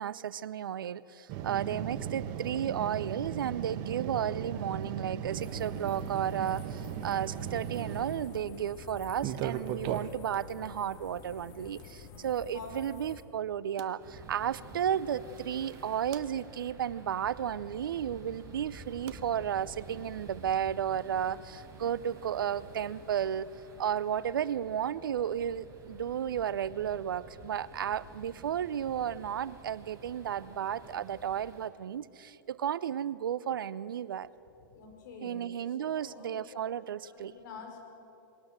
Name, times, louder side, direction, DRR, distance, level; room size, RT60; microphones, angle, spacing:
voice 1, 0.0-23.5 23.8-34.3 35.2-37.3, right 9 dB, 75° right, 19 dB, 0.6 m, -33 dB
sound 1, 1.3-8.4 9.1-10.4 11.8-11.9 13.8-13.9 15.7-16.2 19.1-19.2, right 9 dB, 45° right, 1.0 m, -37 dB
sound 2, 5.3-13.2, left 5 dB, 35° left, 2.1 m, -49 dB
voice 2, 12.5-12.8 30.8-31.2 34.6-36.4 37.0-37.8, left 4 dB, 60° left, 2 dB, 5.2 m, -48 dB
sound 3, 14.0-31.7, right 2 dB, 25° right, 4.5 m, -50 dB
21.5 x 18.0 x 7.4 m, 2.9 s
hypercardioid pair, 105°, 11 cm